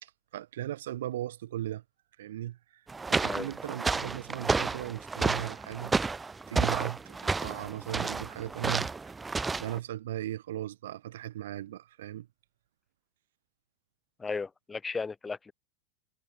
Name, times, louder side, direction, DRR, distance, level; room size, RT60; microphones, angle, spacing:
voice 1, 0.0-1.8 2.2-6.0 6.5-9.1 9.5-12.3, right 13 dB, 60° right, 0.8 m, -37 dB
sound 1, 2.9-9.8, right 4 dB, 15° right, 0.5 m, -31 dB
voice 2, 14.2-15.5, left 4 dB, 15° left, 2.8 m, -35 dB
figure-of-eight pair, 85°, 0 cm